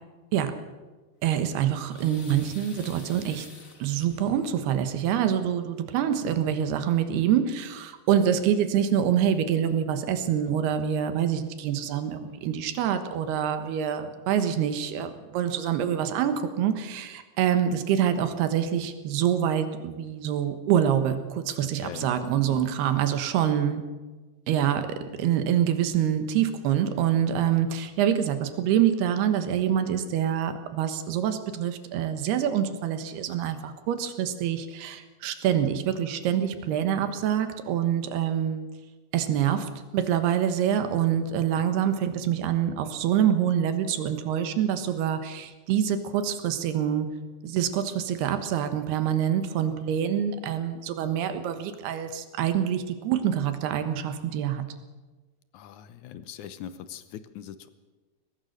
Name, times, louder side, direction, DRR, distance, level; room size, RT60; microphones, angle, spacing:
voice 1, 1.2-3.5 3.8-23.8 24.5-38.7 39.1-47.1 47.4-54.6, right 9 dB, 80° right, 9 dB, 3.4 m, -26 dB
sound 1, 1.4-4.6 5.9-6.0 6.2-6.4, left 4 dB, 55° left, 0.8 m, -50 dB
voice 2, 21.6-22.1 22.4-22.7 55.5-57.7, left 10 dB, 75° left, 12 dB, 1.8 m, -41 dB
22.5 x 18.5 x 6.6 m, 1.3 s
omnidirectional pair, 4.6 m